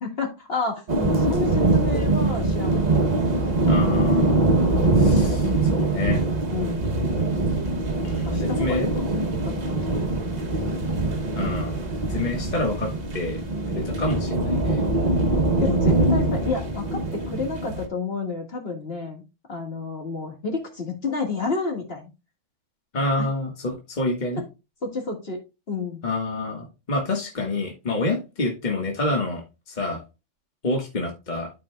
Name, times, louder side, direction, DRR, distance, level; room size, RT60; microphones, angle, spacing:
voice 1, 0.0-2.8 6.5-7.1 8.2-9.1 9.4-10.3 15.6-19.2 19.5-22.0 23.2-23.3 24.4-24.5 24.8-25.4 25.7-26.0, left 4 dB, 55° left, 2 dB, 2.0 m, -30 dB
sound 1, 0.9-17.9, right 2 dB, 35° right, 1.0 m, -23 dB
voice 2, 3.7-4.4 5.0-6.3 8.0-8.9 11.3-11.8 12.1-13.4 13.7-14.9 22.9-24.4 26.0-30.0 30.6-31.5, left 2 dB, 40° left, 0 dB, 1.7 m, -28 dB
13.0 x 4.7 x 2.3 m, 0.27 s
omnidirectional pair, 1.3 m